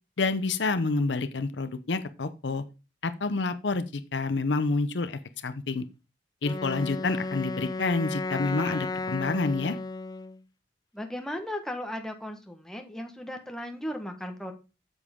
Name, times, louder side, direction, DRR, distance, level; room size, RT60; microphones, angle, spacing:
voice 1, 0.2-2.6 3.0-5.8 6.4-9.8, left 3 dB, 80° left, 12 dB, 0.7 m, -28 dB
Wind instrument woodwind instrument, 6.4-10.4, left 3 dB, 20° left, 0.4 m, -34 dB
voice 2, 10.9-14.5, left 1 dB, 5° left, 3 dB, 1.3 m, -36 dB
8.4 x 7.2 x 3.6 m, 0.30 s
head